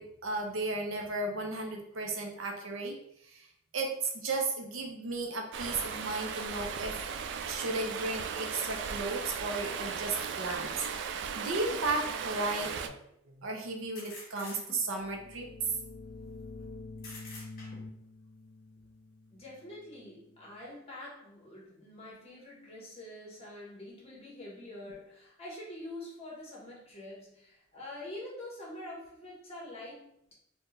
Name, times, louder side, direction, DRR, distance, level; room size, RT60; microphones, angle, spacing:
voice 1, 0.0-2.9 3.3-3.5 3.7-7.0 7.5-10.9 11.4-13.0 13.4-15.5, right 2 dB, 85° right, 2 dB, 0.7 m, -34 dB
Stream, 5.5-12.9, right 6 dB, 65° right, 0.3 m, -37 dB
sound 1, 13.9-15.0 17.0-18.0, left 2 dB, 50° left, 1.5 m, -47 dB
sound 2, 14.9-20.5, left 3 dB, 85° left, 0.4 m, -47 dB
voice 2, 19.3-30.1, left 1 dB, 30° left, -4 dB, 1.4 m, -45 dB
4.3 x 2.4 x 3.2 m, 0.74 s
head